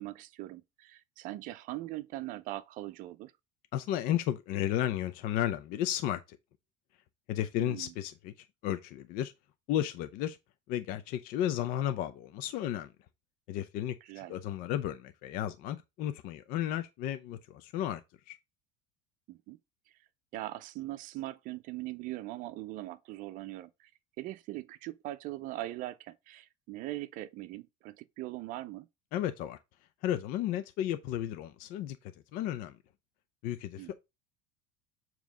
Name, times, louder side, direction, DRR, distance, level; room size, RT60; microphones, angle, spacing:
voice 1, 0.0-3.3 7.6-7.9 14.1-14.3 19.3-19.6 20.3-23.9 24.2-28.9 33.8-33.9, right 16 dB, 55° right, 0.6 m, -41 dB
voice 2, 3.7-6.4 7.3-8.3 8.6-9.3 9.7-10.4 10.7-12.9 13.5-18.0 18.3-18.4 29.1-29.6 30.0-32.8 33.4-33.9, left 11 dB, 60° left, 0.7 m, -33 dB
7.3 x 3.1 x 5.0 m
supercardioid pair, 125°, 16 cm